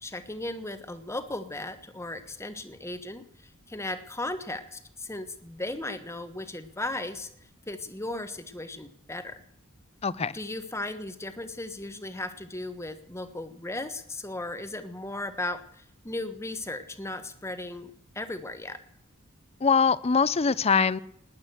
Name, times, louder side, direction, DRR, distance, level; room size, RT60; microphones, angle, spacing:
voice 1, 0.0-7.3 7.7-9.4 10.3-18.8, left 2 dB, 15° left, 10 dB, 1.2 m, -36 dB
voice 2, 10.0-10.4 19.6-21.0, left 5 dB, 30° left, 19 dB, 0.5 m, -23 dB
20.0 x 8.8 x 7.9 m, 0.73 s
head